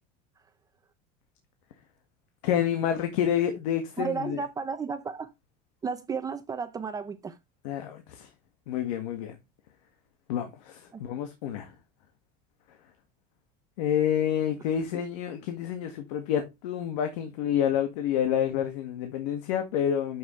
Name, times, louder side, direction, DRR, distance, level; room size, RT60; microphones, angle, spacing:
voice 1, 2.4-4.4 7.6-8.3 8.7-9.4 10.3-11.7 13.8-20.2, left 9 dB, 85° left, 1.8 m, -28 dB
voice 2, 4.0-5.3 5.8-7.3 10.9-11.0, right 5 dB, 20° right, 0.7 m, -33 dB
9.3 x 6.4 x 3.2 m
supercardioid pair, 145°, 20 cm